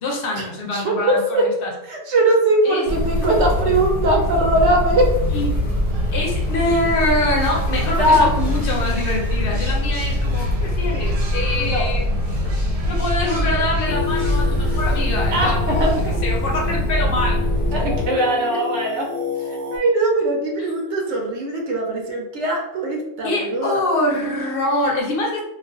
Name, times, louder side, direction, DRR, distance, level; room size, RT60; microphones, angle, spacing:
voice 1, 0.0-1.7 2.6-2.9 5.3-5.5 6.1-12.0 12.9-15.9 16.2-17.4 17.8-18.0 23.2-25.4, left 1 dB, 60° left, -2 dB, 0.8 m, -24 dB
voice 2, 0.7-1.5 1.9-5.1 8.0-8.3 11.6-11.9 15.3-16.2 17.7-19.1 19.5-23.8, right 1 dB, 90° right, 0 dB, 0.9 m, -20 dB
sound 1, 2.9-18.1, left 1 dB, 85° left, 1.1 m, -22 dB
sound 2, 5.4-17.0, right 2 dB, 55° right, 0.4 m, -39 dB
Singing, 13.8-19.8, left 6 dB, 15° left, 0.6 m, -30 dB
2.3 x 2.3 x 2.3 m, 0.87 s
omnidirectional pair, 1.1 m